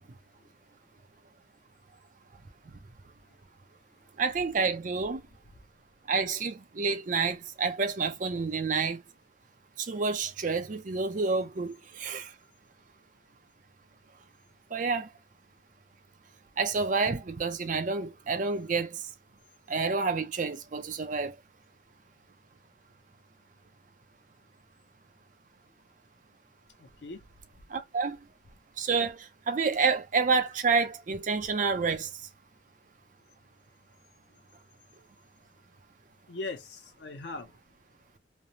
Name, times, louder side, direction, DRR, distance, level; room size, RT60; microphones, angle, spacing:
voice 1, 4.2-5.2 6.1-9.0 9.8-12.3 14.7-15.1 16.6-19.0 19.7-21.4 27.7-28.2 28.8-32.1, right 4 dB, 45° right, 0.5 m, -29 dB
voice 2, 26.8-27.3 34.3-34.4 36.3-37.6, left 3 dB, 75° left, 0.7 m, -41 dB
3.2 x 2.0 x 2.7 m
head